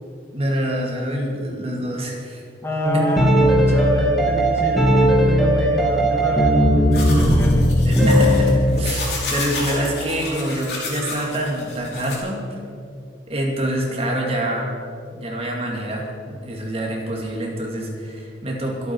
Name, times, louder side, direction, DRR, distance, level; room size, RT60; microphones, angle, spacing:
voice 1, 0.3-2.4 2.9-3.0 7.8-12.6 13.3-14.7 15.1-18.9, right 1 dB, 35° right, 0 dB, 2.4 m, -26 dB
voice 2, 2.6-8.1, equal, 15° left, 0 dB, 1.9 m, -27 dB
sound 1, 2.8-8.9, equal, ahead, 2.1 m, -17 dB
sound 2, 6.9-12.2, left 2 dB, 65° left, 4.6 m, -31 dB
24.5 x 8.8 x 4.7 m, 2.4 s
head